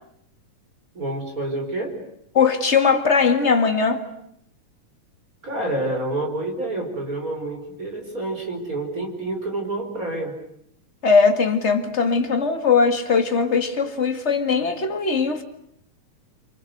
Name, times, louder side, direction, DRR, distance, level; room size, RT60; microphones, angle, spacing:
voice 1, 1.0-2.0 5.4-10.4, right 2 dB, 25° right, 5.2 m, -28 dB
voice 2, 2.3-4.0 11.0-15.4, left 5 dB, 25° left, 1.7 m, -19 dB
29.0 x 26.0 x 7.9 m
omnidirectional pair, 3.7 m